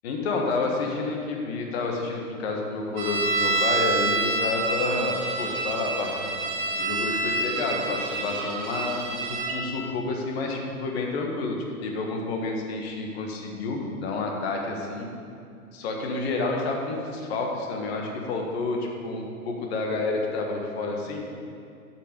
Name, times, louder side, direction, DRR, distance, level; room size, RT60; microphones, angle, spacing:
voice 1, 0.0-6.2 6.8-11.6 11.8-15.1 15.7-21.2, left 3 dB, 45° left, 1 dB, 1.4 m, -29 dB
sound 1, 3.0-9.6, right 3 dB, 40° right, 1.6 m, -27 dB
8.3 x 5.8 x 5.3 m, 2.5 s
figure-of-eight pair, 110°, 44 cm